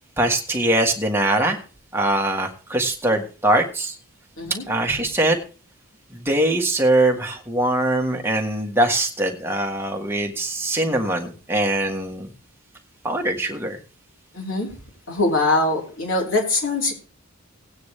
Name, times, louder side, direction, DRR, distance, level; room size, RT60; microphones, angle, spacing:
voice 1, 0.2-1.6 1.9-4.0 4.7-5.4 6.1-12.3 13.0-13.8, right 1 dB, 10° right, 2 dB, 1.6 m, -22 dB
voice 2, 14.3-14.7 15.1-16.9, left 2 dB, 65° left, 0 dB, 4.3 m, -22 dB
17.5 x 9.3 x 3.3 m, 0.36 s
head